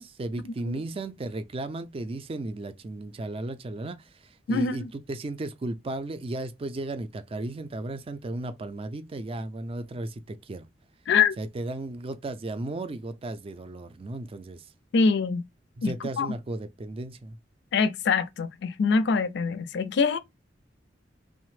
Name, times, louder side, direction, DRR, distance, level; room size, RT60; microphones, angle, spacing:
voice 1, 0.0-10.7 11.4-14.7 15.8-17.4, right 2 dB, 30° right, 0.4 m, -35 dB
voice 2, 4.5-4.9 11.1-11.3 14.9-15.4 15.8-15.9 16.2-16.3 17.7-20.2, left 5 dB, 65° left, 0.4 m, -24 dB
3.1 x 2.0 x 3.1 m
head